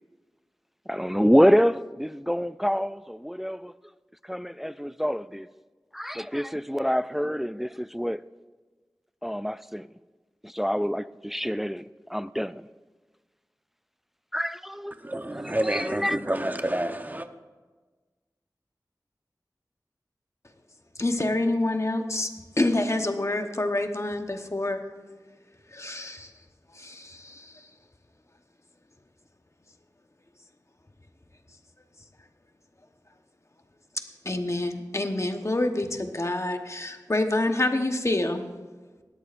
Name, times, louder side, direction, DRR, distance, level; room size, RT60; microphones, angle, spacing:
voice 1, 0.9-3.7 4.3-5.5 5.9-8.2 9.2-9.9 10.4-11.8 12.1-12.6 14.3-14.9 15.6-16.2, equal, 5° right, 0.3 m, -26 dB
voice 2, 15.0-17.3, right 1 dB, 25° right, 0.8 m, -28 dB
voice 3, 21.0-22.3 22.6-24.8 25.7-26.3 26.8-27.4 34.2-38.4, left 2 dB, 45° left, 1.1 m, -27 dB
18.0 x 13.0 x 2.6 m
wide cardioid pair, 40°, 7 cm